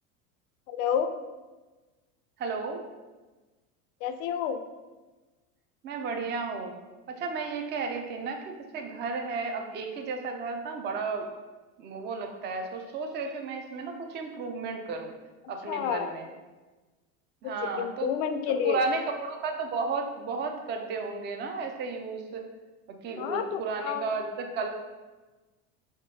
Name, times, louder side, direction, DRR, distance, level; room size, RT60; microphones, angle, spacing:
voice 1, 0.7-1.1 4.0-4.6 15.7-16.1 17.4-18.9 23.2-24.1, left 8 dB, 60° left, 9 dB, 0.5 m, -30 dB
voice 2, 2.4-2.8 5.8-6.8 7.1-11.3 11.8-15.1 15.5-16.3 17.4-18.1 18.6-22.4 23.0-24.7, right 4 dB, 25° right, 4 dB, 0.4 m, -33 dB
4.1 x 3.6 x 2.7 m, 1.2 s
supercardioid pair, 105°, 42 cm